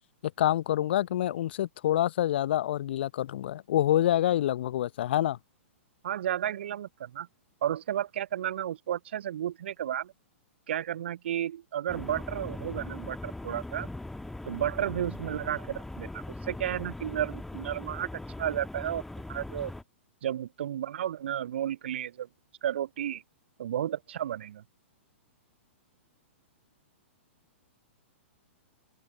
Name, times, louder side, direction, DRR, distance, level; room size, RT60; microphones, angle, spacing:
voice 1, 0.2-5.4, left 12 dB, 55° left, 0.7 m, -27 dB
voice 2, 6.0-7.3 7.6-10.1 10.7-13.9 14.5-18.1 18.4-19.0 19.3-19.7 20.2-22.3 22.6-23.2 23.6-24.6, right 11 dB, 60° right, 0.4 m, -32 dB
sound 1, 11.9-19.8, left 2 dB, 5° left, 1.5 m, -40 dB
figure-of-eight pair, 110°, 7 cm